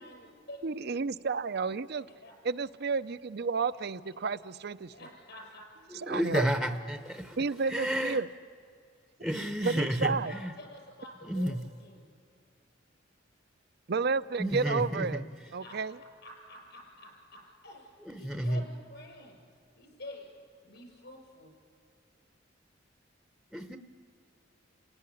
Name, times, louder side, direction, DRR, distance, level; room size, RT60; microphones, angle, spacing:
voice 1, 0.0-0.6 2.1-2.3 4.9-5.7 9.9-12.1 15.6-15.8 16.2-19.4 19.7-20.3 20.6-21.5, left 1 dB, 60° left, 2 dB, 6.9 m, -49 dB
voice 2, 0.6-2.1 2.4-4.9 6.1-6.5 7.4-8.3 9.6-10.3 13.9-15.2 15.5-15.9, right 4 dB, 55° right, 15 dB, 0.6 m, -31 dB
voice 3, 6.0-8.2 9.2-10.5 11.3-11.6 14.4-15.2 18.1-18.6 23.5-23.8, equal, ahead, 7 dB, 0.8 m, -31 dB
29.0 x 17.0 x 10.0 m, 2.3 s
head